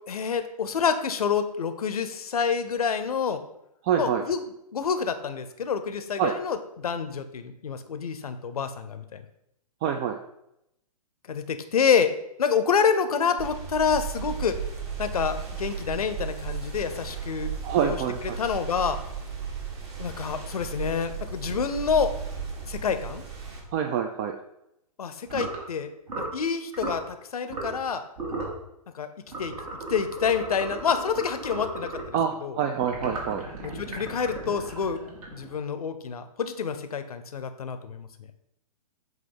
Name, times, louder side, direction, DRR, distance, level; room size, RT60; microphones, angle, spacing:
voice 1, 0.1-3.4 4.0-4.4 4.7-9.2 11.3-12.1 12.4-14.6 15.0-17.5 17.8-18.0 18.4-19.0 20.0-22.1 22.6-23.2 25.0-28.0 28.9-29.1 29.4-29.6 29.9-32.5 33.6-35.0 35.3-38.1, left 6 dB, 70° left, 9 dB, 0.7 m, -27 dB
voice 2, 3.8-4.2 6.2-6.3 9.8-10.2 17.6-18.4 23.7-24.4 32.1-33.4, right 8 dB, 25° right, 5 dB, 0.4 m, -26 dB
sound 1, 13.4-23.6, right 7 dB, 45° right, 1.7 m, -35 dB
sound 2, 25.3-25.6 26.1-26.4 26.7-27.0 27.5-27.9 28.2-28.6 29.3-32.2 32.8-35.6, right 2 dB, 60° right, 2.2 m, -35 dB
7.9 x 2.7 x 5.3 m, 0.81 s
figure-of-eight pair, 115°, 20 cm